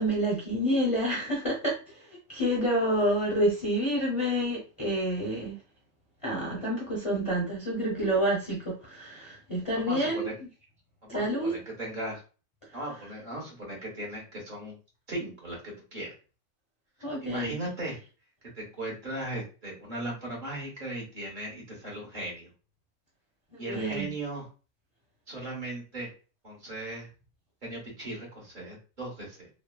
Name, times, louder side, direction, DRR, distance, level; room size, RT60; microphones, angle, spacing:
voice 1, 0.0-1.8 2.1-5.6 6.2-10.2 11.1-11.5 17.0-17.5 23.5-24.1, equal, 30° left, 0.7 m, -28 dB
voice 2, 9.8-10.3 11.0-12.2 12.7-14.7 15.1-16.1 17.2-18.0 18.5-22.5 23.6-24.5 25.3-26.1 26.4-27.1 27.6-29.5, right 1 dB, 40° right, 1.1 m, -37 dB
3.2 x 2.0 x 2.3 m
omnidirectional pair, 1.4 m